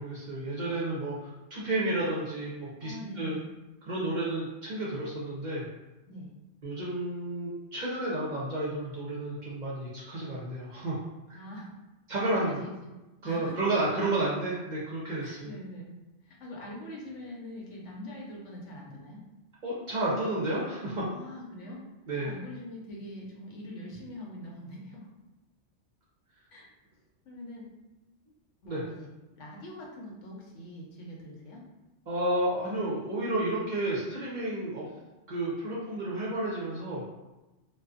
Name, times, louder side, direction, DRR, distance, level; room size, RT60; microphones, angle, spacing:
voice 1, 0.0-3.4 3.9-5.6 6.6-11.0 11.3-11.4 12.1-12.6 13.2-15.5 19.6-21.0 22.1-22.3 28.6-28.8 32.1-34.9 35.3-37.0, right 1 dB, 50° right, -6 dB, 0.6 m, -31 dB
voice 2, 2.8-3.5 6.1-6.3 11.3-11.7 12.5-12.9 13.2-13.6 15.2-15.9 16.2-19.2 21.1-21.8 22.2-25.1 26.5-26.7 27.3-27.7 28.6-29.1 29.4-31.6 34.7-34.8, left 1 dB, 85° left, -2 dB, 1.0 m, -43 dB
2.6 x 2.3 x 2.4 m, 1.1 s
omnidirectional pair, 1.2 m